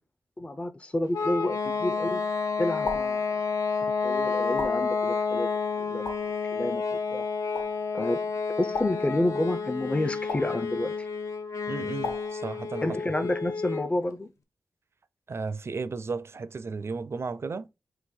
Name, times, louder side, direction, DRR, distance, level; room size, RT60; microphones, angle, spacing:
voice 1, 0.4-2.2 2.6-3.4 4.0-5.5 5.8-6.1 6.5-6.8 7.1-7.3 7.9-8.2 8.6-11.1 12.8-14.3, left 1 dB, 20° left, 0.4 m, -29 dB
sound 1, 1.1-13.9, left 5 dB, 65° left, 0.6 m, -30 dB
sound 2, 2.9-3.3 4.6-5.0 6.1-6.4 7.5-7.8 8.7-9.2 10.3-10.6 12.0-12.4, left 4 dB, 90° left, 1.5 m, -36 dB
voice 2, 11.7-13.0 15.3-17.7, right 4 dB, 50° right, 0.4 m, -34 dB
3.8 x 2.6 x 4.2 m
wide cardioid pair, 75°, 6 cm